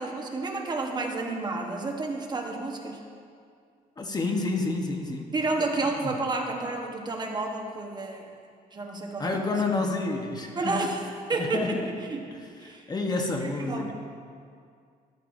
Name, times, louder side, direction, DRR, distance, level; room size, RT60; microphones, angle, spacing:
voice 1, 0.0-3.0 5.3-8.3 8.7-9.5 10.5-11.0 11.3-11.8 12.1-12.3 12.6-12.8 13.4-13.9, right 3 dB, 25° right, 2 dB, 1.0 m, -30 dB
voice 2, 4.0-5.3 6.0-6.2 9.2-10.8 11.3-11.9 12.3-13.9, left 3 dB, 25° left, 2 dB, 1.0 m, -29 dB
13.5 x 12.5 x 2.6 m, 2.2 s
cardioid pair, 125°, 16 cm